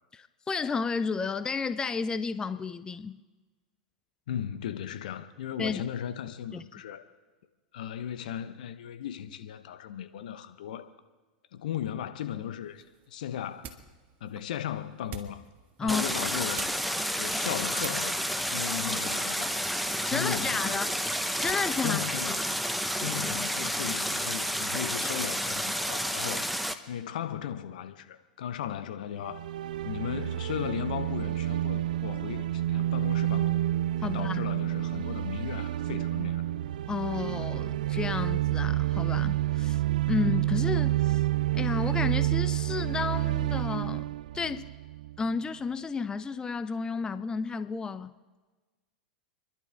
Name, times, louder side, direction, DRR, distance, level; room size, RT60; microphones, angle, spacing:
voice 1, 0.1-3.2 5.6-5.8 6.5-6.6 15.8-16.0 20.1-20.9 21.4-22.0 22.3-22.4 34.0-34.4 36.9-41.2 41.5-44.1 44.3-44.6 45.2-48.1, left 5 dB, 15° left, 0.6 m, -32 dB
voice 2, 4.3-7.0 7.7-10.9 11.5-13.7 14.2-15.4 15.8-16.7 17.2-19.6 20.1-20.8 21.8-22.4 23.0-26.5 26.9-29.4 29.8-33.6 34.0-36.5, left 9 dB, 70° left, 1.1 m, -36 dB
sound 1, 12.6-21.8, right 7 dB, 40° right, 1.6 m, -49 dB
Stream, 15.9-26.7, equal, ahead, 1.0 m, -30 dB
sound 2, 29.2-45.3, right 14 dB, 75° right, 0.4 m, -29 dB
30.0 x 11.5 x 3.5 m
hypercardioid pair, 95°, 4 cm